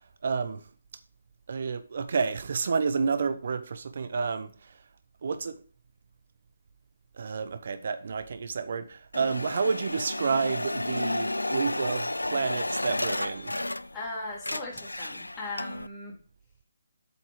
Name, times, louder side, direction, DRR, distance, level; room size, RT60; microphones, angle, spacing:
voice 1, 0.2-0.6 1.5-4.7 5.2-5.6 7.2-13.5, right 5 dB, 50° right, 1.0 m, -30 dB
sound 1, 9.1-14.1 14.3-15.9, left 1 dB, 85° left, 0.4 m, -32 dB
voice 2, 13.9-16.1, left 2 dB, 15° left, 3.7 m, -38 dB
8.2 x 6.9 x 4.9 m
figure-of-eight pair, 145°, 0 cm